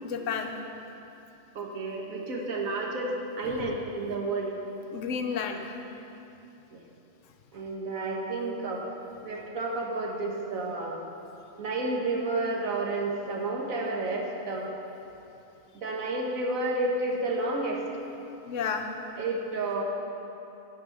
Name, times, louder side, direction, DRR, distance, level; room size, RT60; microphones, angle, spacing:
voice 1, 0.0-0.6 3.4-3.8 4.9-5.7 18.5-18.9, left 6 dB, 70° left, 5 dB, 1.0 m, -32 dB
voice 2, 1.5-4.5 6.7-6.9 7.5-8.8 9.2-11.0 11.6-14.7 15.7-17.8 19.1-19.8, right 2 dB, 80° right, -1 dB, 1.5 m, -31 dB
11.0 x 4.6 x 7.6 m, 2.9 s
omnidirectional pair, 1.4 m